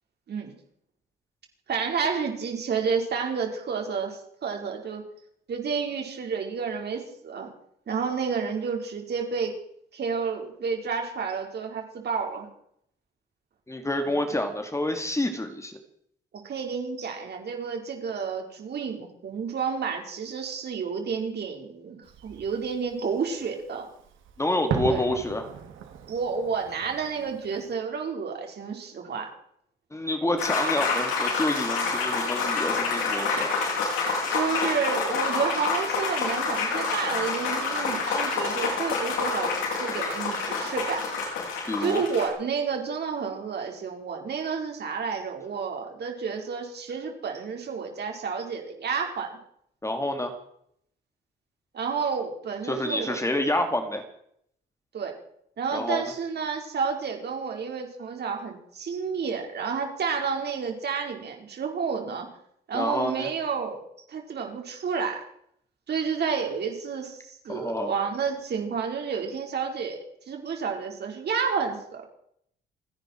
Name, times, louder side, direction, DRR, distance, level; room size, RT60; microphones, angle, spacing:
voice 1, 1.7-5.0 5.5-7.5 7.9-9.5 9.9-12.5 14.1-14.2 16.4-23.9 24.9-25.0 26.1-29.3 34.3-39.5 39.8-41.0 41.8-49.3 51.7-53.2 54.9-55.1 55.6-62.3 62.7-65.2 65.9-70.0 70.3-72.0, right 6 dB, 55° right, 2 dB, 4.8 m, -30 dB
voice 2, 13.7-15.8 24.4-25.5 29.9-33.5 41.7-42.0 49.8-50.3 52.7-54.0 55.7-56.0 62.7-63.3 67.5-67.9, left 1 dB, 15° left, 6 dB, 2.5 m, -28 dB
Fireworks, 22.0-27.7, right 7 dB, 80° right, 2.9 m, -37 dB
sound 1, 30.4-42.3, left 4 dB, 90° left, 7.5 m, -27 dB
29.5 x 10.5 x 4.7 m, 0.69 s
cardioid pair, 90°, 20 cm